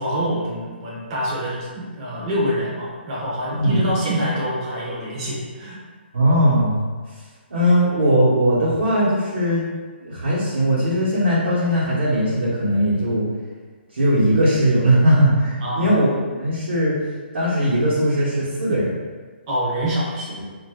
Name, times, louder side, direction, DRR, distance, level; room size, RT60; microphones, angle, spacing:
voice 1, 0.0-5.8 15.6-16.0 19.5-20.4, equal, 30° right, -7 dB, 0.7 m, -25 dB
voice 2, 6.1-6.8 7.5-9.7 10.0-13.3 13.9-16.1 16.4-17.0 17.3-19.0 20.3-20.4, equal, 75° right, -11 dB, 1.1 m, -19 dB
2.5 x 2.2 x 3.5 m, 1.5 s
hypercardioid pair, 155°, 6 cm